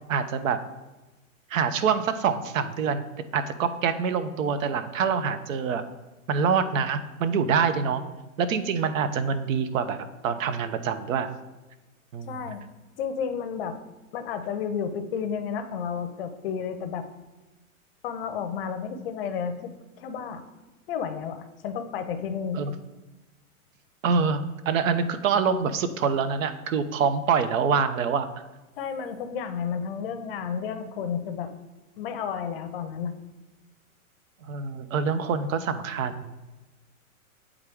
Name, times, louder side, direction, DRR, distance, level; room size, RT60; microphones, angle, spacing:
voice 1, 0.1-0.6 1.5-3.0 3.3-5.8 6.3-8.0 8.4-11.3 12.1-12.4 22.5-22.7 24.0-28.3 34.5-36.3, right 6 dB, 65° right, 11 dB, 0.7 m, -25 dB
voice 2, 12.2-12.6 13.0-13.8 14.1-17.1 18.0-19.7 20.0-20.4 20.9-22.6 28.8-31.5 32.0-33.1, left 7 dB, 40° left, 8 dB, 0.6 m, -32 dB
8.2 x 3.6 x 3.5 m, 1.1 s
hypercardioid pair, 150°, 43 cm